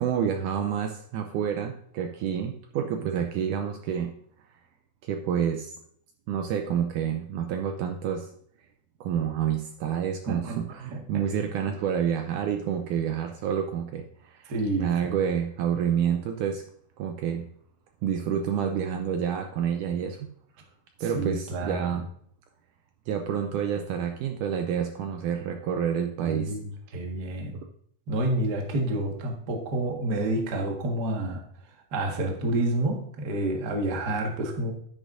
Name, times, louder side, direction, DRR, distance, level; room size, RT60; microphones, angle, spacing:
voice 1, 0.0-4.1 5.0-5.7 6.3-8.3 9.0-14.5 14.8-16.6 17.0-17.4 18.0-20.3 21.0-22.0 23.1-26.6, right 8 dB, 80° right, 5 dB, 1.9 m, -28 dB
voice 2, 10.3-10.6 10.9-11.2 14.5-14.9 21.0-22.0 26.2-27.6 28.1-31.4 31.9-34.7, right 1 dB, 45° right, 1 dB, 1.3 m, -29 dB
10.5 x 9.7 x 2.6 m, 0.63 s
omnidirectional pair, 4.1 m